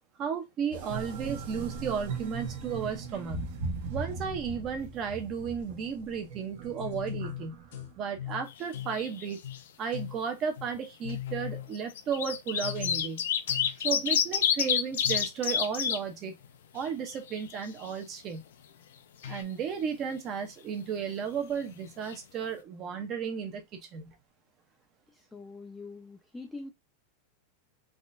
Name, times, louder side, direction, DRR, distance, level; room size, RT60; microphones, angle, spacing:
voice 1, 0.2-3.5 3.9-7.6 8.0-9.4 9.8-13.3 13.8-16.4 16.7-18.4 19.3-24.1, right 7 dB, 25° right, 0.7 m, -34 dB
sound 1, 0.7-8.2, right 4 dB, 55° right, 1.1 m, -38 dB
sound 2, 6.6-7.9 8.2-9.0 9.4-9.6 9.9-10.2 10.6-10.7 11.0-11.7 12.6-13.2 13.5-13.9 15.0-15.3 18.7-18.8 19.2-19.4, left 11 dB, 65° left, 0.9 m, -39 dB
sound 3, 8.5-9.3 9.5-9.6 10.7-10.9 11.8-16.0 16.4-16.5 16.8-17.9 21.7-21.8 22.1-22.2, left 8 dB, 90° left, 0.5 m, -28 dB
voice 2, 25.1-26.7, left 3 dB, 5° left, 0.4 m, -44 dB
3.6 x 3.3 x 2.6 m
supercardioid pair, 175°, 0 cm